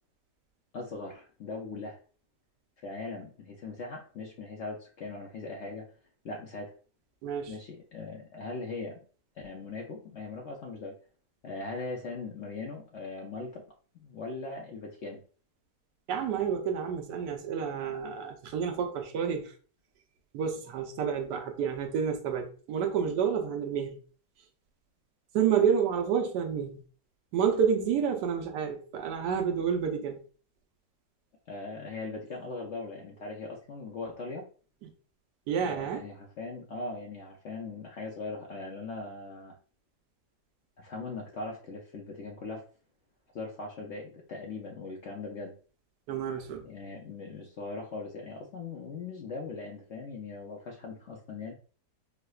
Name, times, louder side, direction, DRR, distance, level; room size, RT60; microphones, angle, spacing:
voice 1, 0.7-2.0 2.8-5.9 6.2-6.7 7.5-9.0 9.4-11.0 11.4-13.6 13.9-15.2 31.5-34.5 35.6-39.6 40.8-42.6 43.3-45.6 46.6-51.5, left 3 dB, 65° left, 0.7 m, -40 dB
voice 2, 7.2-7.5 16.1-19.5 20.3-24.0 25.3-26.8 27.3-30.2 34.8-34.9 35.5-36.0 46.1-46.6, right 7 dB, 85° right, 1.3 m, -29 dB
4.7 x 2.1 x 2.3 m
omnidirectional pair, 1.7 m